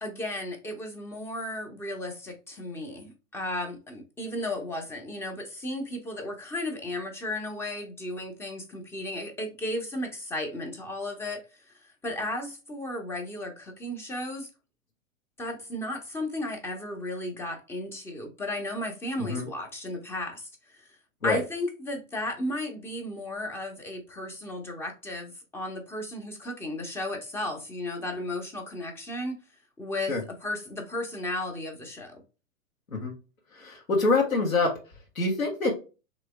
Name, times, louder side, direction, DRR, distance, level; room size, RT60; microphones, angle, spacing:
voice 1, 0.0-14.5 15.4-20.9 21.2-29.4 29.8-32.2, left 1 dB, 5° left, 0.5 m, -34 dB
voice 2, 33.5-34.7 35.1-35.7, left 3 dB, 85° left, 1.3 m, -25 dB
3.2 x 2.9 x 3.4 m
figure-of-eight pair, 105°, 40 cm